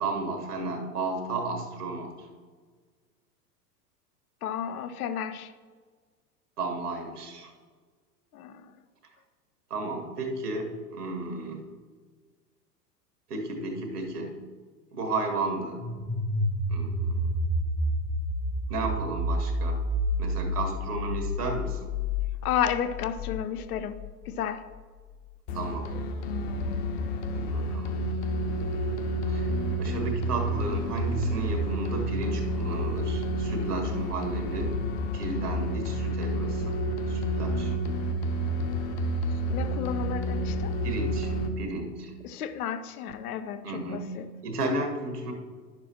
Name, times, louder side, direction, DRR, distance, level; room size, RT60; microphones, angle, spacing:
voice 1, 0.0-2.1 6.6-7.5 9.7-11.6 13.3-14.3 14.9-15.8 16.7-17.2 18.7-19.8 20.2-21.8 25.5-25.9 27.3-28.0 29.3-29.5 29.8-34.8 35.1-36.8 37.1-37.7 40.8-42.1 43.6-45.3, right 2 dB, 70° right, 3 dB, 1.7 m, -33 dB
voice 2, 4.4-5.5 8.3-8.7 22.4-24.7 39.4-40.7 42.2-44.3, left 9 dB, 65° left, 12 dB, 0.6 m, -32 dB
sound 1, 15.8-24.5, left 1 dB, 5° right, 0.6 m, -30 dB
sound 2, 25.5-41.5, equal, 40° left, 0.9 m, -29 dB
11.0 x 6.9 x 2.9 m, 1.5 s
figure-of-eight pair, 95°, 48 cm